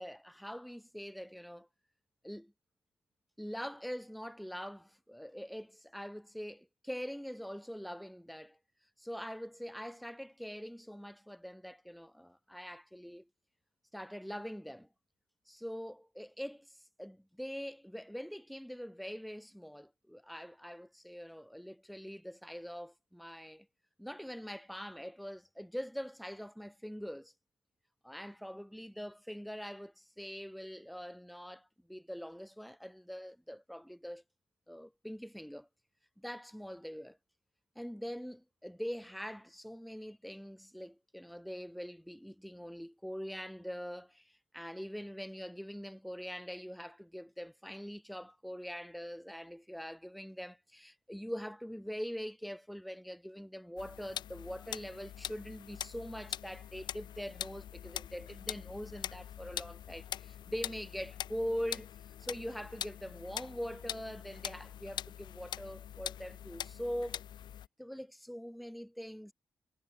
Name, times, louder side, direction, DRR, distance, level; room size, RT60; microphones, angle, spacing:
voice 1, 0.0-1.7 2.2-2.5 3.4-8.6 9.0-13.3 13.9-14.9 15.5-23.7 24.0-27.3 28.0-34.2 34.7-35.7 36.2-37.2 37.8-67.2 67.8-69.3, equal, ahead, 0.8 m, -43 dB
sound 1, 53.8-67.7, left 10 dB, 85° left, 0.6 m, -43 dB
cardioid pair, 105°, 7 cm